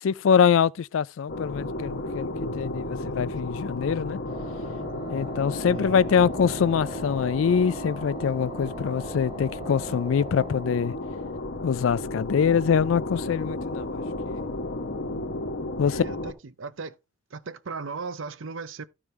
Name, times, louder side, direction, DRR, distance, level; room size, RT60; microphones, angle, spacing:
voice 1, 0.0-4.2 5.1-10.9 11.6-14.4 15.8-16.0, left 7 dB, 85° left, 0.4 m, -24 dB
sound 1, 1.3-16.3, left 2 dB, 65° left, 1.1 m, -33 dB
Wind instrument woodwind instrument, 4.3-10.9, right 4 dB, 30° right, 0.8 m, -41 dB
voice 2, 5.7-6.3 15.9-17.0 17.3-18.8, right 4 dB, 75° right, 0.7 m, -37 dB
14.0 x 4.8 x 3.2 m
head